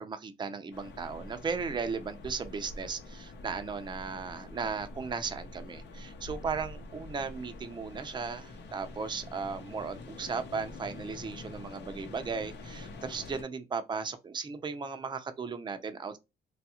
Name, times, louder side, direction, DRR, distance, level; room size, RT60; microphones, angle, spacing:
voice 1, 0.0-16.2, right 5 dB, 25° right, 0.5 m, -36 dB
sound 1, 0.7-13.4, left 2 dB, 65° left, 0.8 m, -46 dB
3.2 x 2.4 x 2.8 m
cardioid pair, 90°, 20 cm